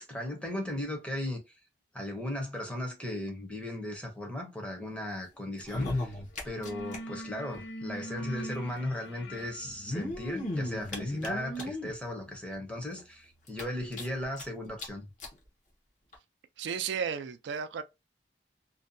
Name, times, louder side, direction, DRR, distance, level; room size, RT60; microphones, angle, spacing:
voice 1, 0.0-1.4 1.9-6.2 6.4-15.1, left 1 dB, 5° left, 0.6 m, -37 dB
sound 1, 5.5-7.0 7.2-7.3 7.5-7.6 8.7-8.8 9.6-11.9 12.5-12.6 13.0-13.1 13.5-14.4 14.8-14.9 15.2-15.3 16.1-16.2, left 1 dB, 45° left, 0.7 m, -35 dB
sound 2, 5.8-6.0 6.3-12.9, equal, 85° left, 0.5 m, -45 dB
voice 2, 16.6-17.8, right 7 dB, 75° right, 0.3 m, -33 dB
2.5 x 2.2 x 2.5 m
head